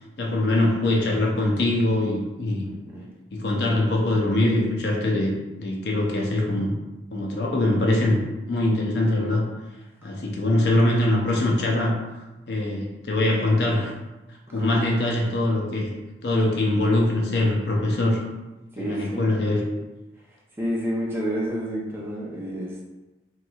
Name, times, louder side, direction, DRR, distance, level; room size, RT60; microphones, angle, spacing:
voice 1, 0.2-2.7 3.3-5.3 5.6-6.7 7.1-8.2 8.5-9.4 10.0-12.0 12.5-13.9 14.5-16.0 16.2-18.2 18.8-19.6, left 1 dB, 65° left, -1 dB, 0.6 m, -22 dB
voice 2, 2.7-3.1 3.6-3.7 14.6-14.9 18.7-19.3 20.6-22.8, equal, 15° right, -4 dB, 0.6 m, -30 dB
3.1 x 3.0 x 2.3 m, 1.1 s
head